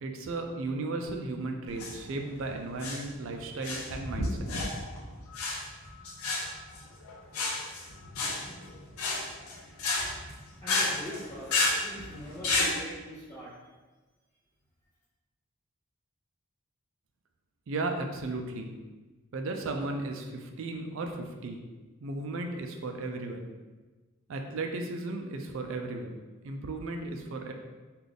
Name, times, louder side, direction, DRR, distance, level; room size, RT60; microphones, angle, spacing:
voice 1, 0.0-4.5 17.7-18.7 19.3-21.6 22.0-23.5 24.3-26.2 26.4-27.5, right 2 dB, 60° right, 4 dB, 0.4 m, -35 dB
sound 1, 1.7-12.7, left 2 dB, 85° left, 0.6 m, -32 dB
voice 2, 10.6-13.5, equal, 25° left, -12 dB, 0.9 m, -42 dB
3.8 x 2.4 x 3.4 m, 1.2 s
head